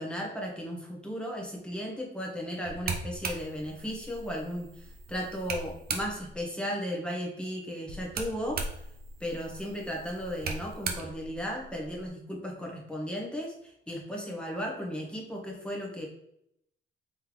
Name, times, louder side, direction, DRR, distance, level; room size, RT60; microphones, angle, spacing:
voice 1, 0.0-8.6 9.2-16.1, equal, 5° left, -1 dB, 1.2 m, -35 dB
sound 1, 2.6-6.4 7.9-12.1, right 4 dB, 50° right, 0.7 m, -39 dB
3.5 x 3.4 x 3.1 m, 0.77 s
cardioid pair, 90°, 20 cm